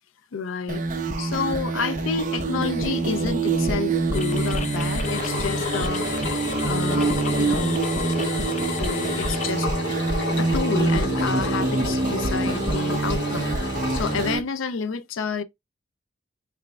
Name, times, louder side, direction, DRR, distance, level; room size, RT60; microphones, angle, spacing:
voice 1, 0.3-0.8 1.2-6.2 6.6-7.8 8.8-9.7 10.4-13.5 13.9-15.4, left 5 dB, 85° left, 0.4 m, -29 dB
sound 1, 0.7-14.4, right 3 dB, 40° right, 0.8 m, -25 dB
sound 2, 4.1-9.5, left 6 dB, 35° left, 0.6 m, -35 dB
Engine, 5.0-14.4, left 3 dB, 65° left, 1.7 m, -31 dB
6.0 x 3.3 x 2.3 m
head